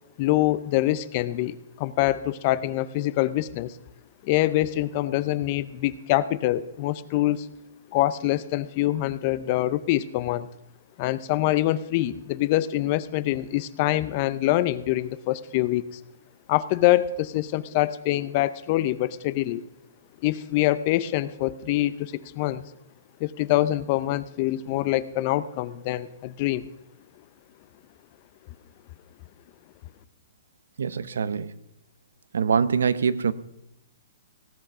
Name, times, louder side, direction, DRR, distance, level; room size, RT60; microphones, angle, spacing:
voice 1, 0.2-3.7 4.2-7.5 7.9-10.5 11.0-16.0 16.5-19.6 20.2-22.6 23.2-26.7, left 15 dB, 35° left, 17 dB, 0.6 m, -25 dB
voice 2, 30.8-31.5 32.3-33.3, right 6 dB, 85° right, 16 dB, 0.7 m, -24 dB
17.5 x 7.9 x 6.0 m, 0.87 s
hypercardioid pair, 160°, 0 cm